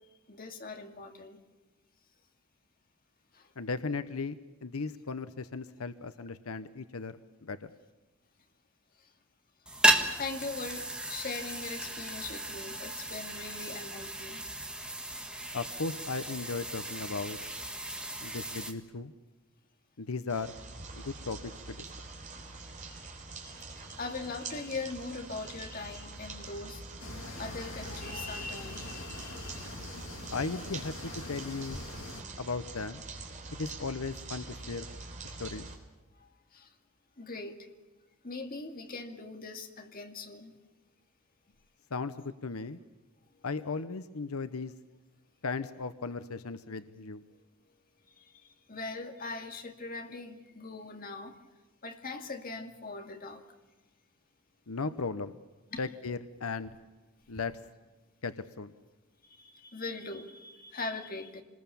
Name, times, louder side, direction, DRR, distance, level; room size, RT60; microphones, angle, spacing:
voice 1, 0.3-1.4 3.3-3.4 10.2-14.5 22.9-23.0 23.5-26.8 27.4-29.7 36.5-36.7 37.2-37.7 38.2-40.6 48.7-51.4 51.8-53.4 55.7-55.8 59.2-61.4, left 3 dB, 40° left, 4 dB, 2.3 m, -41 dB
voice 2, 3.6-7.7 15.5-17.4 18.2-19.1 20.0-20.6 20.9-21.9 30.3-31.8 32.4-33.0 33.5-34.9 35.4-35.7 41.9-42.8 43.4-44.7 45.4-47.2 54.7-55.4 55.8-56.8 57.3-57.6 58.2-58.7, left 4 dB, 90° left, 11 dB, 0.9 m, -36 dB
sound 1, 9.7-18.7, right 1 dB, 5° right, 1.6 m, -34 dB
sound 2, 20.3-35.8, right 3 dB, 35° right, 3.7 m, -45 dB
sound 3, 27.0-32.2, left 2 dB, 65° left, 3.1 m, -44 dB
26.0 x 20.5 x 7.0 m, 1.2 s
head